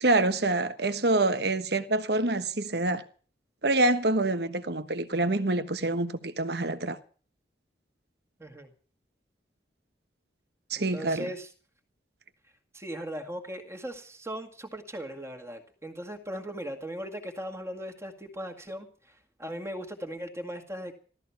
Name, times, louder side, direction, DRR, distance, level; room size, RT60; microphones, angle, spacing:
voice 1, 0.0-3.0 3.6-7.0 10.7-11.3, right 2 dB, 60° right, 1.3 m, -26 dB
voice 2, 8.4-8.7 10.7-11.5 12.7-20.9, equal, 15° right, 2.1 m, -38 dB
15.5 x 13.5 x 5.9 m
head